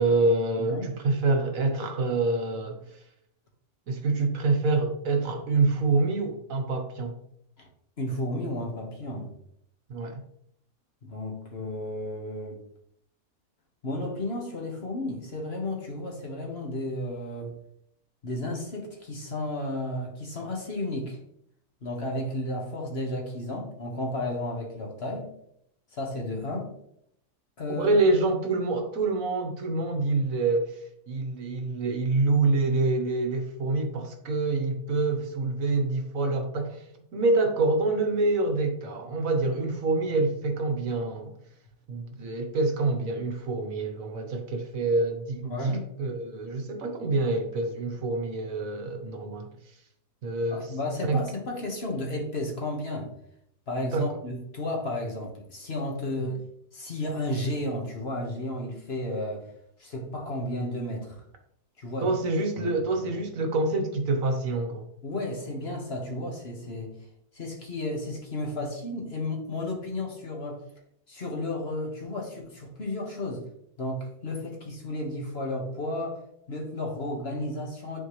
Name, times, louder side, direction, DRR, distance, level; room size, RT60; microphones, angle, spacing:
voice 1, 0.0-2.8 3.9-7.1 9.9-10.2 27.7-36.8 37.1-41.3 41.9-49.5 50.2-50.7 51.0-51.2 53.8-54.1 56.2-56.4 62.0-64.9, right 3 dB, 65° right, 5 dB, 1.5 m, -26 dB
voice 2, 0.6-0.9 7.6-7.7 8.0-9.3 11.0-12.6 13.8-17.5 18.2-21.2 21.8-25.3 25.9-26.7 27.6-28.0 45.4-45.9 50.5-53.1 53.7-56.4 56.7-59.5 59.8-61.1 61.8-62.1 62.6-62.7 65.0-67.0 67.3-70.6 71.1-73.4 73.8-76.2 76.5-78.0, left 1 dB, 45° left, 0 dB, 1.6 m, -33 dB
9.9 x 4.4 x 3.2 m, 0.72 s
omnidirectional pair, 1.5 m